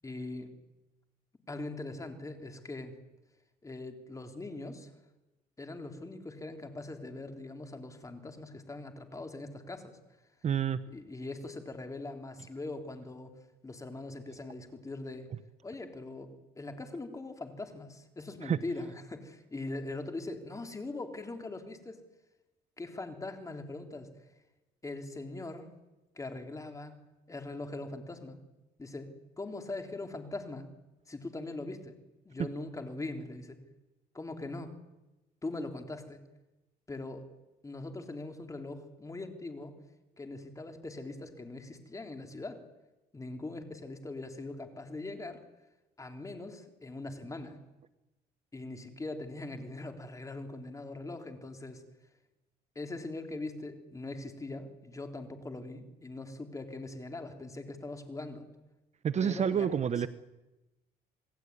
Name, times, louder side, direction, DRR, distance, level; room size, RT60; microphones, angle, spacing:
voice 1, 0.0-0.5 1.5-2.9 3.6-4.9 5.6-10.0 10.9-13.4 13.6-15.3 15.6-22.0 22.8-24.3 24.8-25.7 26.2-28.4 28.8-30.7 31.1-32.0 32.2-33.6 34.1-34.8 35.4-36.2 36.9-37.3 37.6-39.8 40.2-42.6 43.1-45.4 46.0-47.6 48.5-51.8 52.8-58.5 59.2-60.1, left 2 dB, 20° left, 5 dB, 3.8 m, -41 dB
voice 2, 10.4-10.8 18.4-18.6 59.0-60.1, right 8 dB, 40° right, 12 dB, 0.9 m, -28 dB
28.0 x 19.0 x 9.8 m, 1.0 s
cardioid pair, 110°, 17 cm